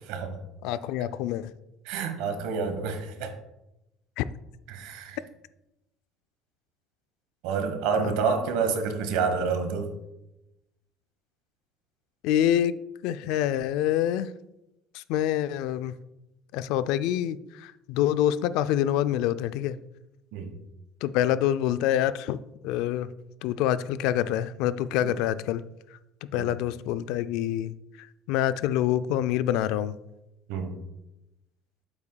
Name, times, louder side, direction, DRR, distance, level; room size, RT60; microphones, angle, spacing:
voice 1, 0.1-0.4 1.8-3.3 4.7-5.2 7.4-9.9 20.3-20.6 25.0-25.1 26.4-26.5 30.5-30.8, right 5 dB, 90° right, 7 dB, 1.2 m, -28 dB
voice 2, 0.6-1.5 4.2-4.3 8.0-8.1 12.2-12.7 13.0-14.3 14.9-15.9 16.5-19.8 21.0-23.1 23.4-25.6 26.3-30.0, left 11 dB, 75° left, 14 dB, 0.3 m, -26 dB
8.7 x 8.0 x 2.3 m, 0.94 s
cardioid pair, 145°, 0 cm